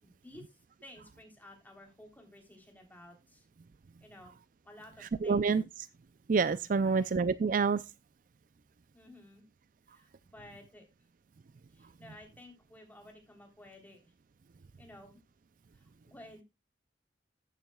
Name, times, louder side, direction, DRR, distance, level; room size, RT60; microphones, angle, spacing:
voice 1, 0.0-3.5 4.0-4.4 4.6-5.4 6.7-7.1 8.9-9.5 9.9-10.8 11.7-14.0 14.8-15.2 15.7-16.4, left 1 dB, 10° left, 3.4 m, -54 dB
voice 2, 5.2-5.6 6.3-7.8, right 5 dB, 50° right, 0.4 m, -27 dB
14.0 x 9.2 x 2.3 m
head